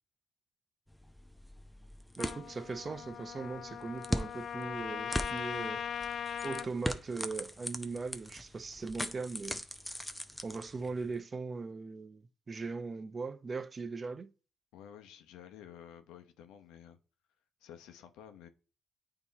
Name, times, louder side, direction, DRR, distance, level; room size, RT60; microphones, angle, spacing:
sound 1, 0.9-11.2, left 1 dB, 5° left, 0.7 m, -41 dB
Trumpet, 2.2-6.7, left 8 dB, 55° left, 0.4 m, -39 dB
voice 1, 2.2-5.8 6.4-9.6 10.4-14.3, right 4 dB, 35° right, 0.6 m, -39 dB
voice 2, 14.7-17.0 17.6-18.5, left 9 dB, 85° left, 0.8 m, -52 dB
8.6 x 2.9 x 4.1 m
supercardioid pair, 75°, 0 cm